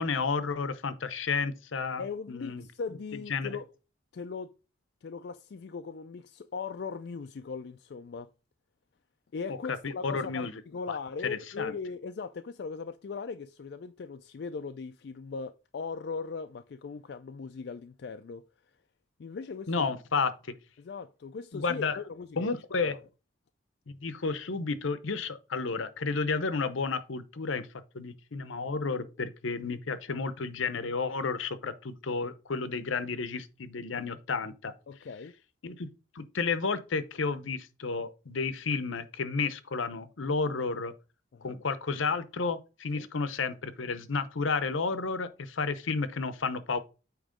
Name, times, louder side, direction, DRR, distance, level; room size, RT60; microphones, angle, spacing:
voice 1, 0.0-2.6 3.3-3.5 9.8-10.5 10.9-11.0 11.2-11.7 19.7-20.3 21.5-22.0 22.4-23.0 23.9-27.7 27.9-34.7 35.6-35.9 36.1-40.9 41.4-46.8, left 4 dB, 80° left, 0.7 m, -31 dB
voice 2, 2.0-3.7 4.1-4.5 5.0-8.3 9.3-18.4 19.2-19.9 20.8-22.5 22.8-23.0 34.9-35.4 41.3-41.6 42.9-43.1, left 5 dB, 55° left, 0.3 m, -39 dB
8.8 x 3.0 x 5.0 m
head